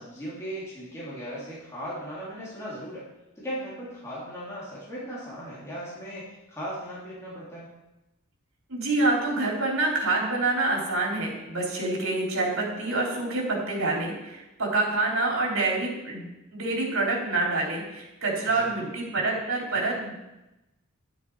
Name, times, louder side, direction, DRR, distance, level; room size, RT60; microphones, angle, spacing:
voice 1, 0.0-3.1 3.4-7.7 18.4-18.9, equal, 15° left, -8 dB, 3.1 m, -37 dB
voice 2, 8.7-20.1, right 2 dB, 70° right, -2 dB, 3.7 m, -27 dB
10.5 x 9.5 x 4.8 m, 0.95 s
head